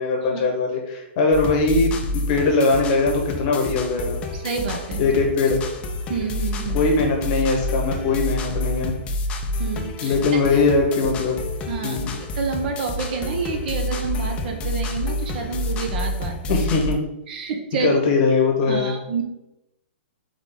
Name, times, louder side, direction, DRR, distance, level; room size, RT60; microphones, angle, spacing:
voice 1, 0.0-4.2 5.0-5.6 6.7-9.0 10.0-11.4 11.8-12.1 16.5-17.0 17.8-18.9, left 3 dB, 35° left, 1 dB, 0.9 m, -21 dB
sound 1, 1.3-16.9, left 2 dB, 15° left, 0.4 m, -28 dB
voice 2, 4.4-5.1 6.1-6.8 9.6-10.4 11.7-12.0 12.3-16.6 17.3-17.9 18.7-19.2, right 5 dB, 50° right, 4 dB, 0.7 m, -28 dB
3.7 x 3.6 x 3.7 m, 0.88 s
hypercardioid pair, 160°, 6 cm